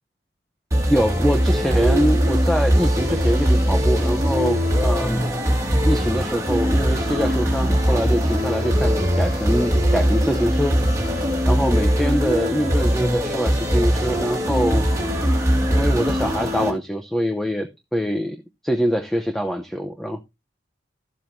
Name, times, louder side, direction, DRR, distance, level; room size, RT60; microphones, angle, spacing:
sound 1, 0.7-16.7, equal, 15° right, 2.5 m, -20 dB
voice 1, 0.9-5.3 5.8-10.8 11.0-14.8 15.7-18.4 18.6-20.2, equal, ahead, 0.7 m, -24 dB
13.5 x 7.4 x 2.6 m
head